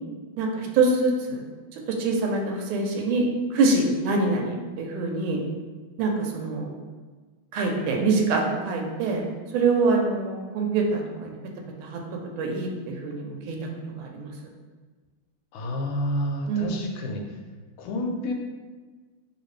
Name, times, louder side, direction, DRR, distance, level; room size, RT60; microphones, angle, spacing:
voice 1, 0.4-1.5 1.7-3.2 3.5-5.4 6.0-6.7 7.5-9.2 9.5-11.4 11.8-13.6 14.0-14.3 16.5-16.9, right 3 dB, 80° right, 1 dB, 1.3 m, -25 dB
voice 2, 15.5-17.2 17.8-18.3, left 1 dB, 80° left, 2 dB, 1.4 m, -29 dB
3.1 x 2.9 x 3.1 m, 1.4 s
omnidirectional pair, 2.4 m